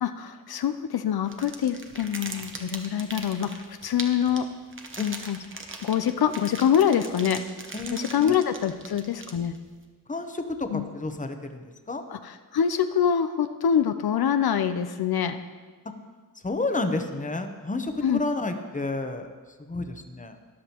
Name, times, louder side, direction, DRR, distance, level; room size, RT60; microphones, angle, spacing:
voice 1, 0.0-4.5 5.0-5.4 5.8-7.4 7.9-9.6 10.7-10.8 12.1-15.4 18.0-18.2, left 8 dB, 75° left, 9 dB, 0.5 m, -25 dB
sound 1, 1.3-9.7, right 3 dB, 35° right, 1.0 m, -40 dB
voice 2, 10.1-12.0 16.4-19.3 19.7-20.4, left 2 dB, 20° left, 7 dB, 0.8 m, -30 dB
13.5 x 11.0 x 2.9 m, 1.5 s
wide cardioid pair, 85°, 37 cm